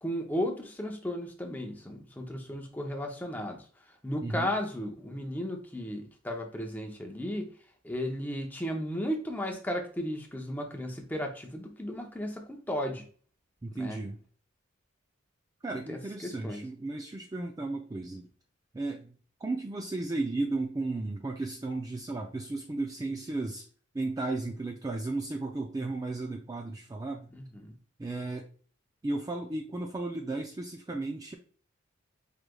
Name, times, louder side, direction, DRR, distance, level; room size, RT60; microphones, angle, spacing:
voice 1, 0.0-3.6 4.0-7.5 7.8-13.0 13.7-14.0 15.9-16.6 27.4-27.8, equal, 10° left, 1 dB, 0.7 m, -35 dB
voice 2, 4.2-4.5 13.6-14.2 15.6-18.3 18.7-23.7 23.9-27.3 28.0-28.5 29.0-31.3, right 2 dB, 20° right, 1 dB, 0.3 m, -34 dB
4.8 x 3.2 x 2.3 m, 0.42 s
head